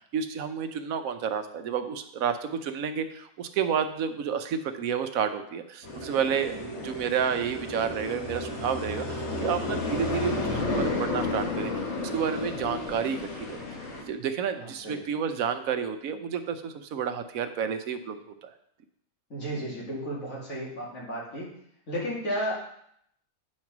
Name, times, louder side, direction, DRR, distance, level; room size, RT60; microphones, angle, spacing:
voice 1, 0.1-13.6 14.0-18.5, right 7 dB, 85° right, 8 dB, 1.2 m, -30 dB
sound 1, 5.8-14.0, left 2 dB, 55° left, 1.6 m, -32 dB
voice 2, 6.4-7.1 14.6-15.0 19.3-21.5 21.9-22.5, equal, 75° left, -5 dB, 2.8 m, -34 dB
8.5 x 4.3 x 6.0 m, 0.70 s
omnidirectional pair, 1.4 m